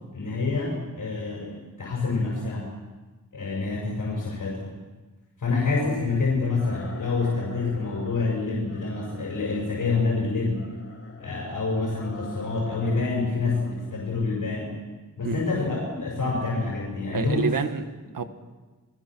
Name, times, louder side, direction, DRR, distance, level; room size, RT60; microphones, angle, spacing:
voice 1, 0.1-2.7 3.3-4.7 5.4-10.7 11.2-14.7 15.2-17.5, left 3 dB, 85° left, -2 dB, 6.0 m, -27 dB
sound 1, 6.5-8.3 8.6-10.1 10.5-11.5 11.9-13.1 13.4-14.1, left 3 dB, 45° left, 3.6 m, -45 dB
voice 2, 17.1-18.2, right 5 dB, 85° right, 8 dB, 1.7 m, -28 dB
29.0 x 21.0 x 6.2 m, 1.3 s
wide cardioid pair, 125°, 32 cm